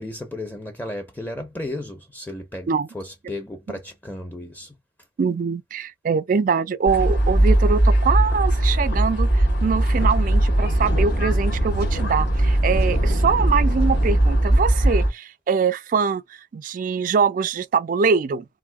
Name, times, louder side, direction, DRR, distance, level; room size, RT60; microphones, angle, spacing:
voice 1, 0.0-4.7, left 1 dB, 10° left, 0.5 m, -34 dB
voice 2, 5.2-16.2 16.5-18.5, right 5 dB, 45° right, 0.3 m, -23 dB
sound 1, 6.9-15.1, right 1 dB, 75° left, 2.5 m, -20 dB
Wind, 9.4-15.0, equal, 55° left, 1.6 m, -30 dB
3.5 x 2.6 x 2.2 m
head